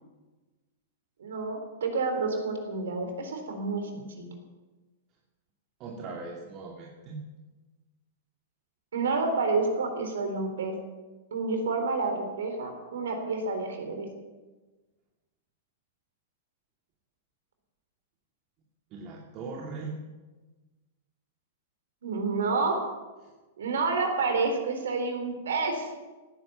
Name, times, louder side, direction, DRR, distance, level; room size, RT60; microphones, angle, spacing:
voice 1, 1.2-4.3 8.9-10.8 11.3-14.1 22.0-22.8 23.6-25.9, right 3 dB, 70° right, 5 dB, 3.9 m, -29 dB
voice 2, 5.8-7.2 18.9-20.0 23.2-23.3, right 3 dB, 40° right, -1 dB, 2.6 m, -39 dB
18.0 x 10.5 x 7.2 m, 1.2 s
figure-of-eight pair, 105°, 0 cm